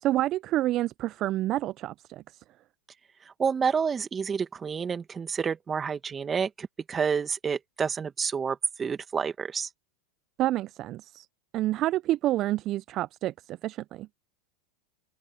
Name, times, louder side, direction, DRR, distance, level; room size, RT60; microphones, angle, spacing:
voice 1, 0.0-2.4 10.4-11.3 11.5-14.1, right 15 dB, 45° right, 0.6 m, -28 dB
voice 2, 3.4-9.7, right 6 dB, 25° right, 2.1 m, -29 dB
hypercardioid pair, 90°, 0 cm